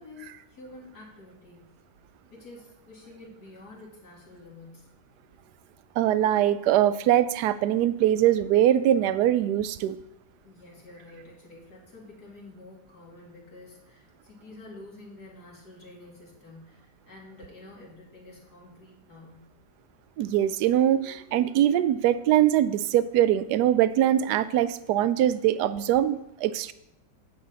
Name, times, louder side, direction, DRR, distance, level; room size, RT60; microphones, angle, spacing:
voice 1, 0.0-1.7 2.3-4.9 10.4-19.5, left 2 dB, 60° left, -4 dB, 3.2 m, -48 dB
voice 2, 6.0-10.0 20.2-26.7, right 11 dB, 75° right, 14 dB, 1.1 m, -22 dB
10.5 x 8.3 x 4.1 m, 0.84 s
omnidirectional pair, 1.9 m